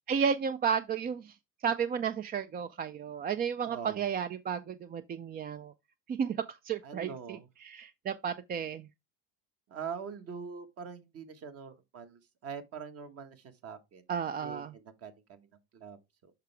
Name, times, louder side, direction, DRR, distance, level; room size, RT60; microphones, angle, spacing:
voice 1, 0.1-1.3 1.6-5.7 6.1-7.4 7.6-8.8 14.1-14.7, right 7 dB, 25° right, 0.4 m, -32 dB
voice 2, 3.6-4.0 6.8-7.5 9.7-14.0 14.4-16.3, right 6 dB, 45° right, 1.4 m, -44 dB
6.6 x 5.8 x 3.3 m
supercardioid pair, 115°, 34 cm